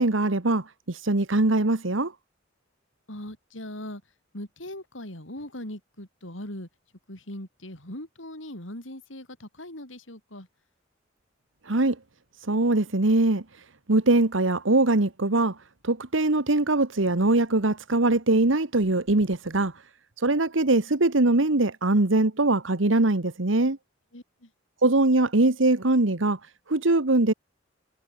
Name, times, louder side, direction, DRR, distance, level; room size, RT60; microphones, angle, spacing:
voice 1, 0.0-2.1 11.6-12.0 12.4-15.6 15.8-19.8 20.2-23.8 24.8-27.3, right 2 dB, 75° right, 1.6 m, -22 dB
voice 2, 3.1-4.0 4.3-6.7 7.1-10.5 24.1-24.5, left 1 dB, 75° left, 7.6 m, -40 dB
head